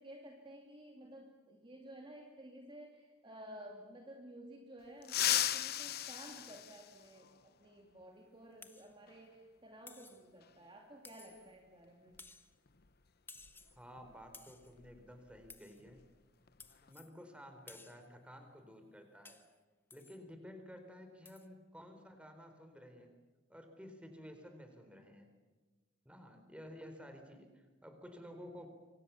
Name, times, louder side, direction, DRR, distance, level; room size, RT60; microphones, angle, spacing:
voice 1, 0.0-12.2, right 1 dB, 25° right, 1 dB, 2.5 m, -53 dB
sound 1, 5.0-7.4 9.1-9.2 10.4-10.5 12.1-12.3 12.7-12.9 13.4-15.5 15.8-16.1 16.5-16.9, left 12 dB, 55° left, 0.9 m, -37 dB
sound 2, 8.6-8.9 9.9-10.3 11.0-11.6 12.2-12.5 13.3-13.8 14.3-14.7 15.5-15.8 16.6-17.1 17.7-18.1 19.2-19.5 19.9-20.2 21.2-21.5, left 3 dB, 10° left, 1.3 m, -56 dB
voice 2, 13.8-16.0 16.8-19.4 19.9-23.1 23.5-25.3 26.0-28.7, equal, 5° right, 6 dB, 4.1 m, -53 dB
28.0 x 24.5 x 7.2 m, 1.3 s
head